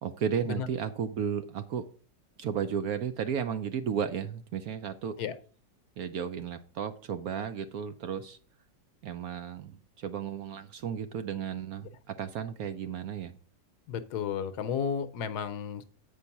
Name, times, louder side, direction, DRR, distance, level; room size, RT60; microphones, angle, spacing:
voice 1, 0.0-1.9 2.4-5.2 6.0-8.4 9.0-13.4, right 8 dB, 70° right, 10 dB, 1.0 m, -34 dB
voice 2, 13.9-15.8, left 7 dB, 70° left, 11 dB, 1.2 m, -33 dB
8.1 x 5.3 x 5.8 m, 0.42 s
omnidirectional pair, 1.9 m